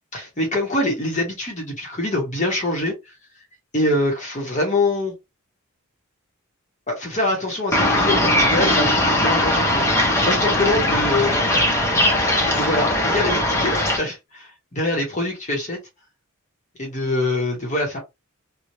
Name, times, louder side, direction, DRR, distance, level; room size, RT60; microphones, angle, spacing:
voice 1, 0.1-3.0 3.7-5.1 6.9-11.4 12.5-15.8 16.8-18.0, left 2 dB, 35° left, 1.4 m, -24 dB
sound 1, 7.7-14.0, left 1 dB, 10° left, 0.9 m, -19 dB
3.2 x 2.7 x 2.7 m
head